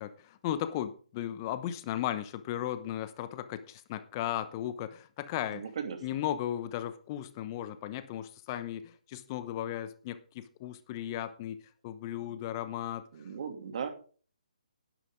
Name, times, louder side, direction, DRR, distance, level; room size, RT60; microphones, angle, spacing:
voice 1, 0.0-5.6 6.0-13.1, left 11 dB, 30° left, 0.9 m, -36 dB
voice 2, 5.5-6.2 12.3-12.4 13.1-13.9, right 6 dB, 50° right, 2.7 m, -38 dB
11.5 x 11.5 x 3.8 m
hypercardioid pair, 150°, 4 cm